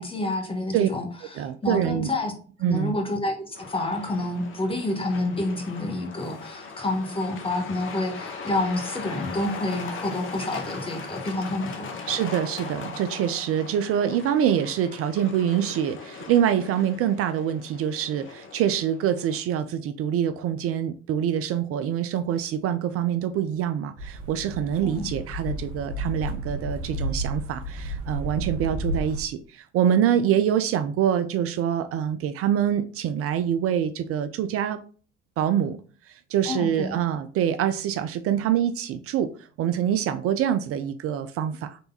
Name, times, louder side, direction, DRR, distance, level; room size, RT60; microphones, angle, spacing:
voice 1, 0.0-2.3 2.7-11.9 24.8-25.1 36.4-37.0, left 2 dB, 15° left, 3 dB, 1.2 m, -29 dB
voice 2, 1.4-2.1 2.6-3.0 12.1-34.8 35.4-35.8 36.3-39.3 39.6-41.8, right 9 dB, 45° right, 11 dB, 0.4 m, -25 dB
Truck, 3.5-19.4, left 4 dB, 35° left, 0.9 m, -39 dB
sound 1, 24.0-29.2, right 1 dB, 60° right, 0.8 m, -32 dB
4.0 x 3.3 x 2.8 m, 0.41 s
hypercardioid pair, 60°, 34 cm